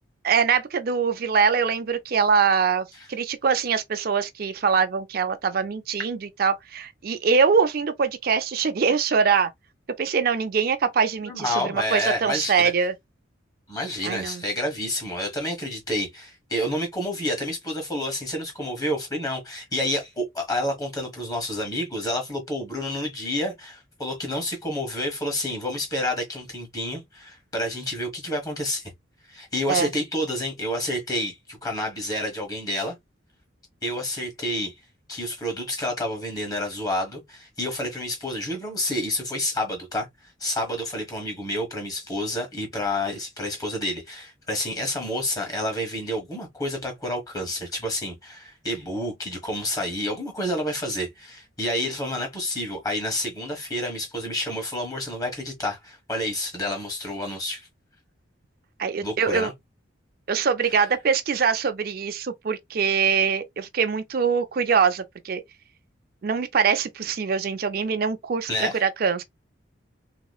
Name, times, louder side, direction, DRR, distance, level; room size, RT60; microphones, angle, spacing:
voice 1, 0.2-9.5 10.0-12.9 14.0-14.4 29.7-29.9 58.8-59.5 60.3-65.4 66.2-69.2, right 6 dB, 50° right, 0.4 m, -23 dB
voice 2, 11.2-12.7 13.7-28.9 29.3-33.0 33.8-34.7 35.1-40.1 40.4-57.7 59.0-59.5 68.5-68.8, left 1 dB, 20° left, 1.3 m, -29 dB
3.6 x 3.0 x 2.3 m
head